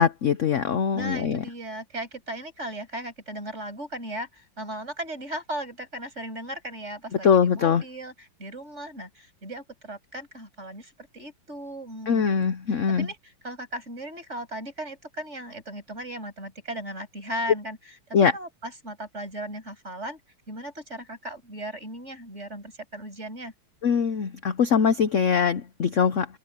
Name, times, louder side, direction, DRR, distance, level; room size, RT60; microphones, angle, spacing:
voice 1, 0.0-1.4 7.2-7.8 12.1-13.1 18.1-18.3 23.8-26.3, left 6 dB, 55° left, 0.9 m, -22 dB
voice 2, 0.9-18.0 18.3-20.2 20.5-23.5, right 1 dB, 35° right, 7.2 m, -37 dB
open air
omnidirectional pair, 2.2 m